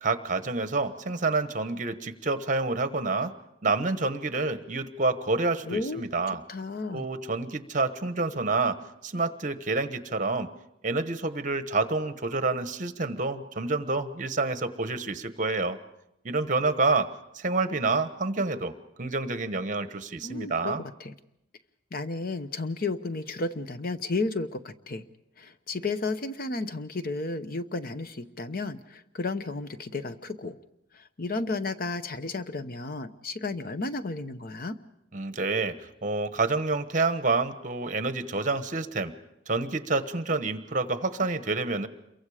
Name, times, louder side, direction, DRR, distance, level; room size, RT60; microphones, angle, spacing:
voice 1, 0.0-3.3 3.6-6.4 6.9-10.5 10.8-15.8 16.2-17.1 17.3-20.8 35.1-39.1 39.5-41.9, right 3 dB, 45° right, 11 dB, 1.2 m, -28 dB
voice 2, 5.6-6.0 6.5-7.1 20.2-21.1 21.9-25.0 25.4-30.6 30.9-34.7, left 3 dB, 50° left, 11 dB, 0.9 m, -33 dB
28.0 x 23.5 x 5.0 m, 0.84 s
head